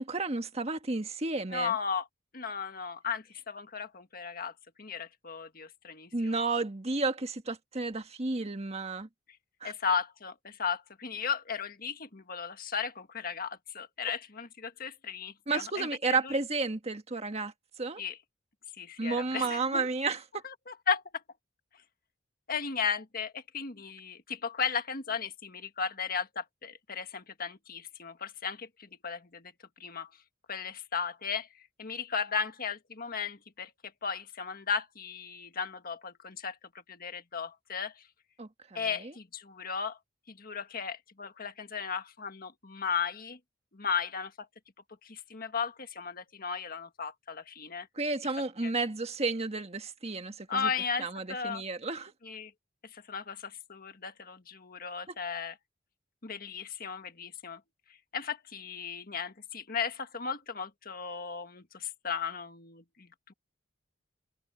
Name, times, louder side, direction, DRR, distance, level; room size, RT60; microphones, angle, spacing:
voice 1, 0.0-1.7 6.1-9.1 9.6-9.7 15.5-18.0 19.0-20.2 38.4-39.1 47.9-50.7 51.0-52.1, right 3 dB, 35° right, 1.5 m, -32 dB
voice 2, 1.5-2.1 2.3-4.5 4.8-6.4 9.6-15.9 16.2-16.3 18.0-18.2 18.8-19.9 20.7-21.0 22.5-29.5 29.8-30.1 30.5-31.5 31.8-33.7 34.0-36.6 36.9-37.9 38.7-40.0 40.3-43.4 43.7-44.5 45.0-47.9 48.6-48.7 50.5-51.6 52.2-52.5 52.9-55.6 56.2-57.6 58.1-63.3, left 6 dB, 50° left, 1.6 m, -35 dB
head